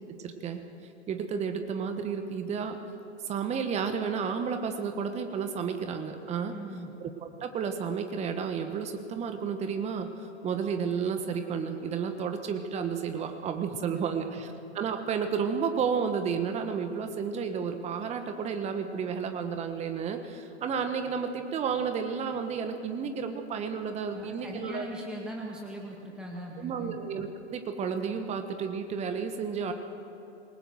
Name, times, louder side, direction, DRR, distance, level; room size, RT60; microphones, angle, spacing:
voice 1, 0.1-0.6 1.1-2.8 3.2-6.5 7.0-24.9 26.6-29.7, right 6 dB, 20° right, 7 dB, 1.4 m, -32 dB
voice 2, 6.5-6.9 14.0-14.4 24.1-27.0, right 1 dB, ahead, -2 dB, 2.0 m, -40 dB
27.5 x 19.0 x 6.5 m, 2.9 s
figure-of-eight pair, 115°, 35 cm